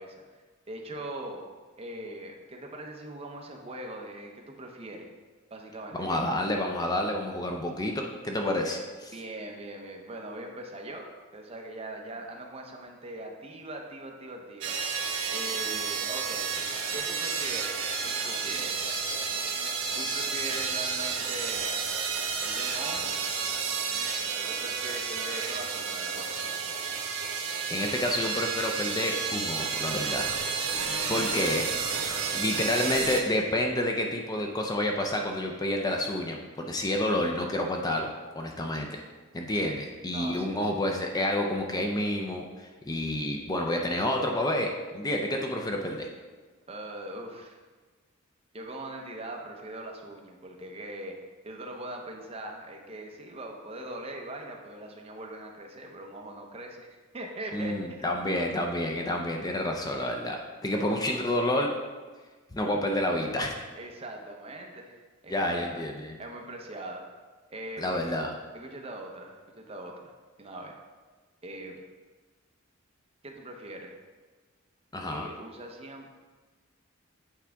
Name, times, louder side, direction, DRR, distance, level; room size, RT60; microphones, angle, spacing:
voice 1, 0.0-1.4 1.8-5.1 5.5-6.2 9.1-11.1 11.3-14.8 15.3-16.5 16.9-17.8 18.0-18.8 19.9-21.8 22.4-23.1 24.3-26.4 30.8-31.2 31.5-32.0 39.6-40.7 46.7-47.6 48.5-51.2 51.4-58.7 60.8-61.3 63.8-65.8 66.2-67.0 67.5-68.2 68.5-70.1 70.4-70.8 71.4-71.8 73.2-73.9 75.1-76.1, right 1 dB, 30° right, 1 dB, 0.8 m, -41 dB
voice 2, 5.9-9.1 27.7-30.3 31.1-31.7 32.3-38.1 38.3-39.0 39.3-46.1 57.5-61.7 62.5-63.5 65.3-66.2 67.8-68.3 74.9-75.3, left 1 dB, 20° left, 2 dB, 0.5 m, -29 dB
sound 1, 14.6-33.2, right 5 dB, 85° right, 0.9 m, -31 dB
8.4 x 4.8 x 3.5 m, 1.4 s
head